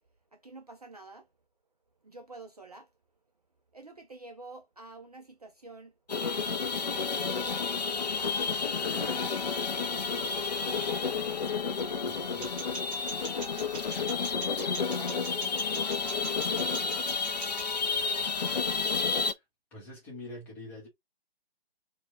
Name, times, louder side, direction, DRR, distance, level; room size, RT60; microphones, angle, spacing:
voice 1, 0.3-1.3 2.0-2.9 3.7-5.9 6.4-10.1 14.8-16.0 16.5-17.1 17.8-18.4, right 3 dB, 40° right, 0.4 m, -49 dB
sound 1, 6.1-19.3, left 5 dB, 40° left, 0.4 m, -31 dB
sound 2, 7.8-11.3, left 5 dB, 75° left, 0.9 m, -48 dB
voice 2, 12.0-12.5 17.9-18.4 18.9-19.4 19.7-20.9, left 1 dB, 5° left, 0.8 m, -47 dB
sound 3, 12.4-17.7, right 5 dB, 20° right, 1.5 m, -44 dB
4.4 x 2.2 x 2.9 m
figure-of-eight pair, 140°, 32 cm